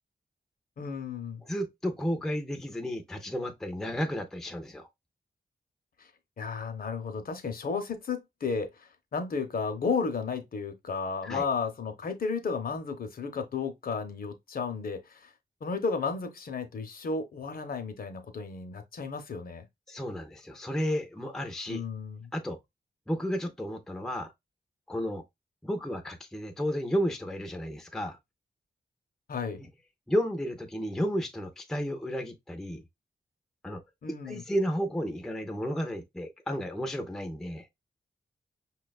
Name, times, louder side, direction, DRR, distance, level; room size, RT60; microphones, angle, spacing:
voice 1, 0.8-1.4 6.4-8.7 9.1-15.3 15.6-19.7 21.7-22.3 29.3-29.6 34.0-34.4, left 5 dB, 55° left, 0.6 m, -33 dB
voice 2, 1.4-4.9 11.2-11.4 19.9-21.8 22.3-22.6 23.1-24.3 24.9-25.2 25.6-28.2 29.6-29.7 30.1-32.8 33.6-33.8 34.2-37.7, equal, 5° left, 0.4 m, -32 dB
5.6 x 2.2 x 2.3 m
wide cardioid pair, 165°, 17 cm